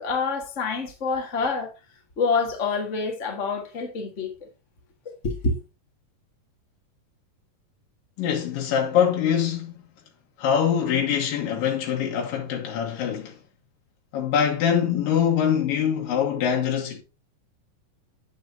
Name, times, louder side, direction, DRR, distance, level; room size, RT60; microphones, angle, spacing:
voice 1, 0.0-1.7 2.2-4.5 5.0-5.6, left 4 dB, 50° left, 0.8 m, -27 dB
voice 2, 8.2-9.8 10.4-13.4 14.1-17.0, left 8 dB, 90° left, 3.0 m, -24 dB
8.9 x 8.5 x 2.7 m
omnidirectional pair, 3.9 m